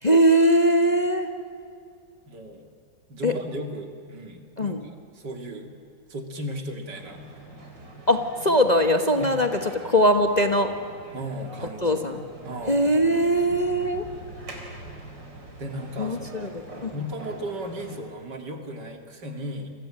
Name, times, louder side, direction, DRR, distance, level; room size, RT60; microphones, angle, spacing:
voice 1, 0.0-1.3 3.2-3.3 4.6-4.9 8.1-10.7 11.8-12.2 12.7-14.1 16.0-16.9, equal, 25° left, 5 dB, 1.2 m, -21 dB
voice 2, 2.3-2.7 3.1-4.7 5.2-5.7 6.1-7.3 9.2-9.3 11.1-12.0 12.4-12.9 15.6-16.6 16.9-19.7, equal, 70° right, 4 dB, 3.1 m, -35 dB
sound 1, 6.9-18.0, right 1 dB, 85° right, 4.9 m, -43 dB
28.5 x 22.5 x 8.8 m, 2.2 s
omnidirectional pair, 1.9 m